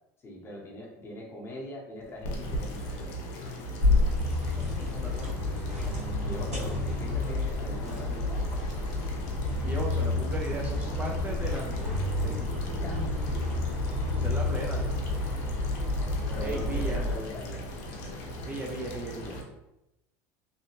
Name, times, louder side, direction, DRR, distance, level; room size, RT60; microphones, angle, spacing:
voice 1, 0.2-3.2 6.2-8.7 12.7-13.5 16.3-17.7, left 1 dB, 30° left, -2 dB, 0.9 m, -42 dB
sound 1, 2.0-19.4, equal, 70° left, 0.7 m, -39 dB
sound 2, 3.8-17.2, left 2 dB, 85° right, 1.3 m, -29 dB
voice 2, 4.6-5.4 9.6-12.6 14.1-15.1 16.4-17.1 18.5-19.4, right 2 dB, 20° right, -1 dB, 0.4 m, -37 dB
2.8 x 2.2 x 2.8 m, 0.90 s
supercardioid pair, 115°, 8 cm